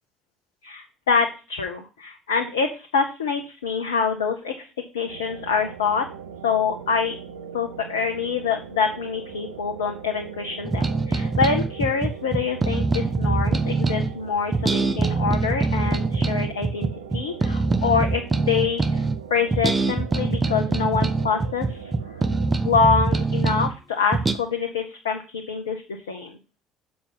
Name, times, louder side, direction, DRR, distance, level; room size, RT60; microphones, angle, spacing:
voice 1, 0.6-4.7 4.9-6.1 6.4-7.1 7.5-19.0 19.3-21.8 22.6-26.4, left 5 dB, 75° left, 3 dB, 0.8 m, -25 dB
sound 1, 5.1-22.5, right 7 dB, 75° right, 0.7 m, -40 dB
sound 2, 10.6-14.1 14.5-19.2 19.5-23.7 24.1-24.3, right 3 dB, 20° right, 0.8 m, -23 dB
6.8 x 5.4 x 5.5 m, 0.33 s
figure-of-eight pair, 55°, 0 cm